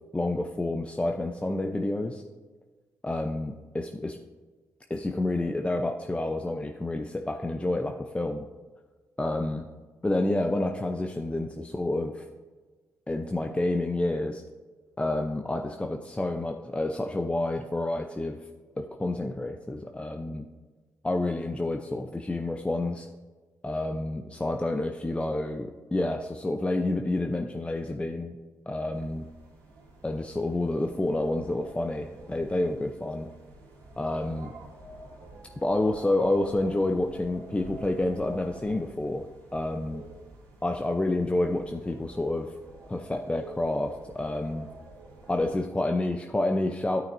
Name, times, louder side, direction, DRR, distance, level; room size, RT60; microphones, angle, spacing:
voice 1, 0.1-2.2 3.0-4.2 4.9-8.5 9.2-9.7 10.0-12.2 13.1-14.4 15.0-18.5 18.8-20.5 21.0-23.1 23.6-28.4 28.7-29.3 30.0-33.3 34.0-34.5 35.6-40.0 40.6-42.5 42.9-44.7 45.3-47.0, left 2 dB, 15° left, 4 dB, 0.6 m, -29 dB
sound 1, 28.9-45.6, right 3 dB, 90° right, 2.5 m, -49 dB
12.5 x 5.8 x 2.6 m, 1.3 s
supercardioid pair, 55°, 7 cm